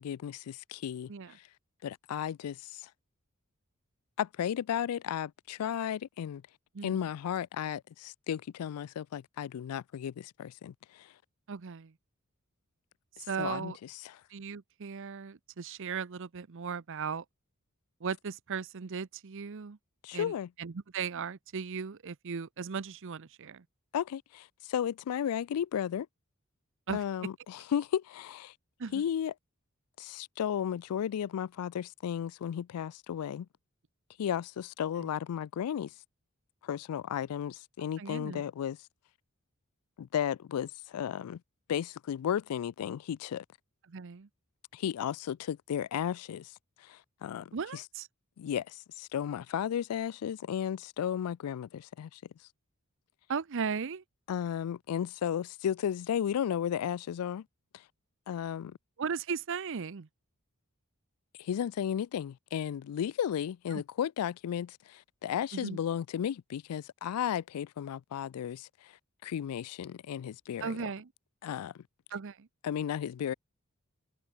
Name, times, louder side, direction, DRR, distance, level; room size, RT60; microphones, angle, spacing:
voice 1, 0.0-1.1 1.8-2.9 4.2-6.4 6.8-11.1 13.4-13.7 14.0-14.2 20.0-20.5 23.9-26.1 26.9-28.5 28.9-29.3 30.0-33.5 34.2-35.9 36.6-38.8 40.0-41.4 41.7-43.4 44.7-46.5 46.8-47.8 48.4-52.2 54.3-57.4 58.3-58.8 61.4-68.9 69.2-70.9 71.4-71.8 72.6-73.3, left 9 dB, 85° left, 0.3 m, -34 dB
voice 2, 11.5-11.9 13.3-13.8 14.3-17.2 18.0-19.8 20.1-23.6 26.9-27.0 28.8-29.0 35.0-35.1 38.0-38.4 43.9-44.3 47.5-48.1 53.3-54.0 59.0-60.1 63.7-63.8 65.5-65.8 70.6-71.1 72.1-72.5, right 6 dB, 60° right, 0.6 m, -37 dB
head